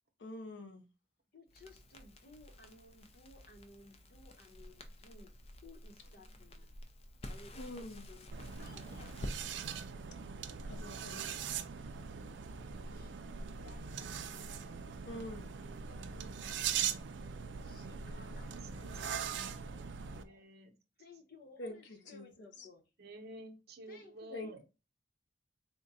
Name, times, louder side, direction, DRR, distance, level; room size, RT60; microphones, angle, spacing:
voice 1, 0.2-0.9 7.5-8.1 10.6-11.4 15.0-15.5 21.6-22.7 24.3-24.6, left 1 dB, 85° left, 0.7 m, -46 dB
voice 2, 1.3-5.3 5.6-6.7 7.3-9.2 12.8-14.5 15.7-16.8 17.6-19.7 20.1-20.5 21.0-22.8 23.9-24.6, left 2 dB, 55° left, 0.8 m, -59 dB
Crackle, 1.5-9.4, left 1 dB, 35° left, 0.5 m, -49 dB
voice 3, 6.2-6.6 9.8-10.3 17.8-18.3 20.0-20.7 23.0-24.6, right 1 dB, 60° right, 0.7 m, -53 dB
sound 1, 8.3-20.2, right 7 dB, 80° right, 0.4 m, -41 dB
3.6 x 2.1 x 4.0 m
head